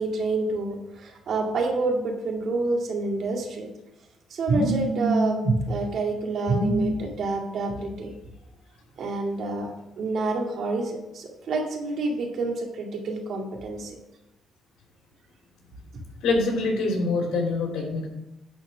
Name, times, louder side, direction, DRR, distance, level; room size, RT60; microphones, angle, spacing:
voice 1, 0.0-3.7 4.3-8.1 9.0-14.0, right 2 dB, 65° right, 1 dB, 2.2 m, -27 dB
voice 2, 16.2-18.1, left 3 dB, 85° left, 0 dB, 3.1 m, -25 dB
10.5 x 4.5 x 6.1 m, 0.93 s
cardioid pair, 90°, 0 cm